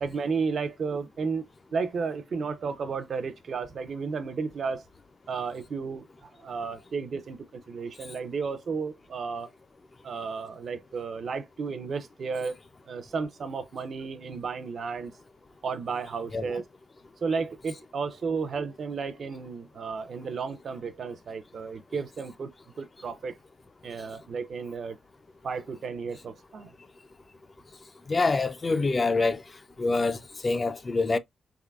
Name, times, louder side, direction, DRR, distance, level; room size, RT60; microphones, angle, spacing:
voice 1, 0.0-4.8 5.3-9.5 10.0-12.6 12.9-15.1 15.6-16.6 17.2-23.4 23.8-25.0 25.4-26.7, right 5 dB, 50° right, 0.5 m, -33 dB
voice 2, 28.1-29.4 29.8-30.2 30.4-31.2, left 3 dB, 30° left, 0.4 m, -25 dB
3.8 x 3.6 x 2.3 m
cardioid pair, 120°, 0 cm